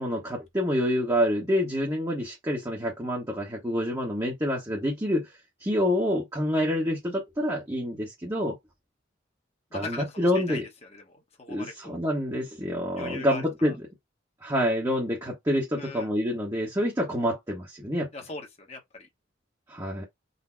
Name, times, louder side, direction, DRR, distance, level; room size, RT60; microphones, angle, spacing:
voice 1, 0.0-5.3 5.6-8.6 9.7-10.6 11.5-13.8 14.4-18.1 19.7-20.0, equal, 15° right, 1.1 m, -27 dB
voice 2, 9.7-12.0 13.0-13.7 15.7-16.1 18.1-19.1, left 3 dB, 30° left, 1.1 m, -40 dB
4.1 x 2.2 x 4.4 m
head